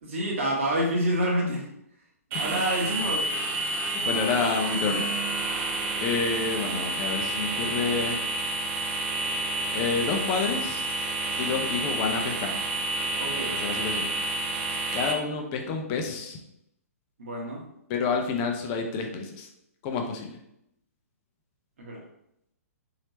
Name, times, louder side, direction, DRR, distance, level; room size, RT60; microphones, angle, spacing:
voice 1, 0.0-1.7 2.3-3.3 13.2-13.5 17.2-17.6 21.8-22.0, equal, 50° right, -2 dB, 1.3 m, -28 dB
sound 1, 2.3-15.1, right 2 dB, 20° right, 0.4 m, -29 dB
voice 2, 3.9-5.0 6.0-8.2 9.7-10.8 11.4-12.6 13.6-14.1 14.9-16.4 17.9-19.5 19.8-20.3, left 4 dB, 30° left, 3 dB, 0.6 m, -28 dB
4.2 x 3.0 x 2.9 m, 0.79 s
figure-of-eight pair, 120°, 8 cm